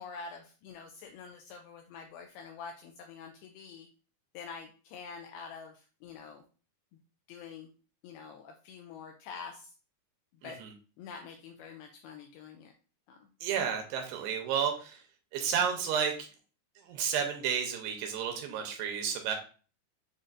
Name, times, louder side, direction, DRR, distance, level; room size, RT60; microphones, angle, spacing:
voice 1, 0.0-3.9 4.3-6.4 7.3-7.7 8.0-9.7 10.4-10.6 11.0-12.7 13.1-13.3, left 5 dB, 85° left, 4 dB, 2.2 m, -46 dB
voice 2, 13.4-15.0 15.3-16.1 16.8-19.4, right 7 dB, 80° right, 4 dB, 2.6 m, -31 dB
7.2 x 2.6 x 2.5 m, 0.37 s
omnidirectional pair, 4.8 m